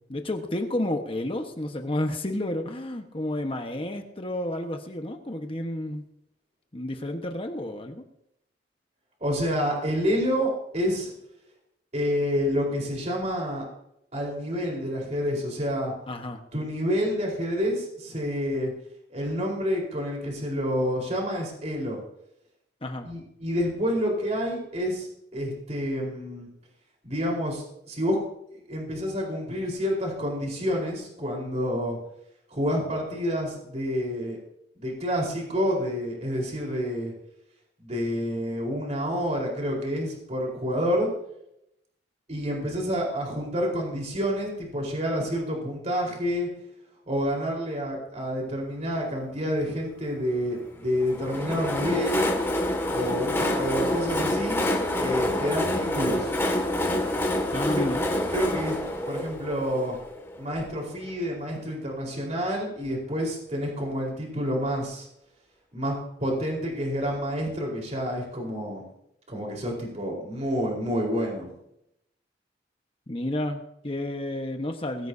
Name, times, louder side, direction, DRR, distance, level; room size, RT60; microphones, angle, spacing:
voice 1, 0.0-6.0 6.7-8.0 16.1-16.4 22.8-23.1 57.5-58.1 73.1-75.1, left 1 dB, 30° left, 4 dB, 1.3 m, -31 dB
voice 2, 9.2-11.1 11.9-13.6 14.1-15.9 16.5-18.7 19.1-22.0 23.0-26.5 27.0-28.2 28.5-32.0 32.5-34.4 34.7-37.1 37.8-41.1 42.3-46.5 47.1-52.3 52.9-54.6 55.0-56.3 57.8-57.9 58.3-58.7 59.0-60.0 60.4-65.1 65.7-68.9 69.3-71.5, equal, 40° right, -1 dB, 4.4 m, -28 dB
Train, 51.0-60.7, left 1 dB, 15° left, 2.1 m, -27 dB
21.0 x 15.0 x 2.8 m, 0.79 s
head